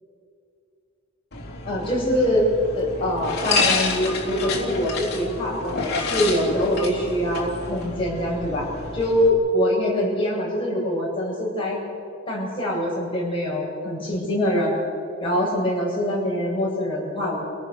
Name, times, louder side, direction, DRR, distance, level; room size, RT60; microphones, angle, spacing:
sound 1, 1.3-9.3, left 3 dB, 55° left, 3.9 m, -29 dB
voice 1, 1.7-2.4 2.7-8.7 8.9-11.8 12.2-14.8 15.2-17.4, left 1 dB, 25° left, -5 dB, 7.9 m, -24 dB
29.5 x 18.0 x 6.9 m, 2.6 s
head